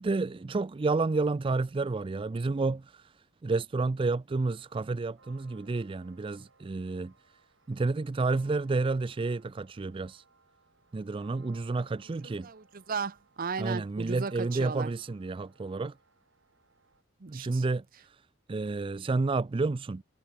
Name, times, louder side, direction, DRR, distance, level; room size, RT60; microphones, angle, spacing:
voice 1, 0.0-3.1 3.4-7.1 7.7-10.2 10.9-12.5 13.6-15.9 17.3-18.2 18.5-20.0, right 3 dB, 25° right, 0.4 m, -30 dB
sound 1, 4.3-17.0, right 4 dB, 70° right, 3.6 m, -63 dB
voice 2, 12.2-14.9 17.2-17.6, right 5 dB, 45° right, 0.8 m, -36 dB
head